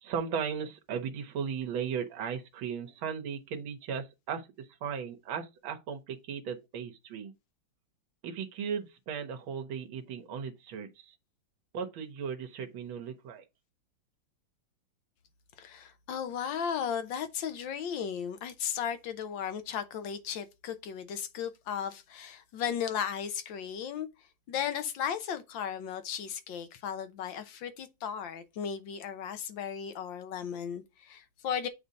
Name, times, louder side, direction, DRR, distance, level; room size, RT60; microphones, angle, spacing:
voice 1, 0.0-7.3 8.2-11.1 11.7-13.4, right 7 dB, 90° right, 1.7 m, -36 dB
voice 2, 15.6-24.1 24.5-31.7, left 8 dB, 70° left, 1.5 m, -35 dB
7.8 x 2.8 x 5.1 m
omnidirectional pair, 2.2 m